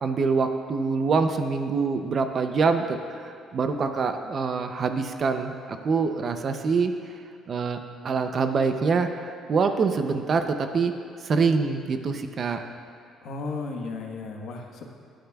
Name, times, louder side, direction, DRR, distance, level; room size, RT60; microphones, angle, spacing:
voice 1, 0.0-6.9 7.5-7.8 8.0-10.9 11.2-12.6, right 4 dB, 35° right, 7 dB, 0.5 m, -25 dB
voice 2, 13.2-14.9, left 3 dB, 60° left, 2 dB, 1.2 m, -34 dB
20.5 x 10.0 x 2.3 m, 2.5 s
cardioid pair, 170°, 0 cm